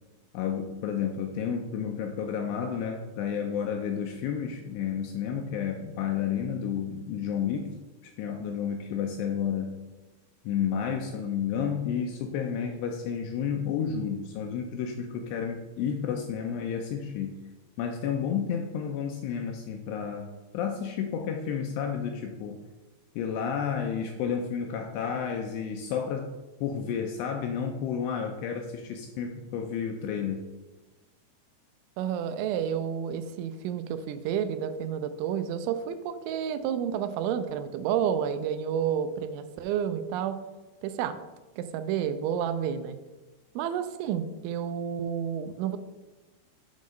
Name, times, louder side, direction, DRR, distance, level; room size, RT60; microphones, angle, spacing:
voice 1, 0.3-7.7 8.0-9.8 10.5-17.4 17.8-22.6 23.2-26.3 26.6-30.5, left 7 dB, 85° left, 4 dB, 2.4 m, -31 dB
voice 2, 32.0-40.4 40.8-41.2 41.6-43.0 43.6-45.8, right 8 dB, 85° right, 10 dB, 3.0 m, -30 dB
8.3 x 3.9 x 6.2 m, 1.1 s
omnidirectional pair, 5.3 m